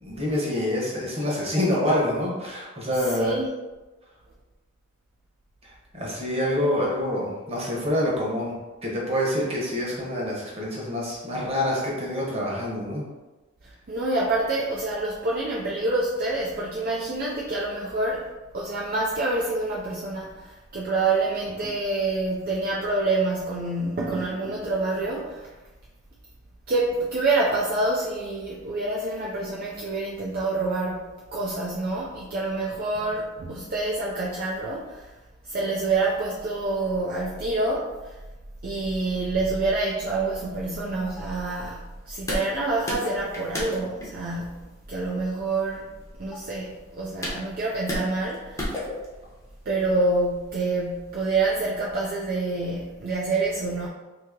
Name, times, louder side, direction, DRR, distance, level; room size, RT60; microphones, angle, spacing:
voice 1, 0.0-3.3 5.9-8.5 8.8-13.0, left 1 dB, 30° right, -5 dB, 1.0 m, -26 dB
voice 2, 3.1-3.5 13.9-18.3 18.5-25.5 26.7-35.1 35.4-38.2 38.6-45.9 46.2-48.7 49.7-53.9, right 2 dB, 45° right, -4 dB, 0.4 m, -27 dB
sound 1, 39.3-52.1, left 1 dB, 15° left, 0.7 m, -38 dB
2.9 x 2.8 x 3.6 m, 1.2 s
head